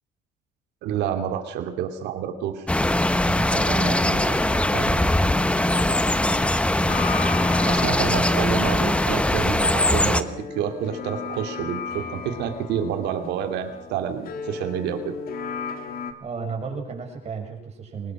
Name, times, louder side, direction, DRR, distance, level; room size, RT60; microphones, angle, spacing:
voice 1, 0.8-2.7 7.6-15.1, right 9 dB, 85° right, 7 dB, 2.7 m, -28 dB
sound 1, 2.7-10.2, left 1 dB, 5° left, 1.1 m, -21 dB
voice 2, 3.2-5.0 16.2-18.1, right 5 dB, 40° right, 2 dB, 6.6 m, -33 dB
sound 2, 6.9-16.1, left 6 dB, 60° left, 2.4 m, -35 dB
22.5 x 20.0 x 6.2 m, 0.78 s
cardioid pair, 110°, 17 cm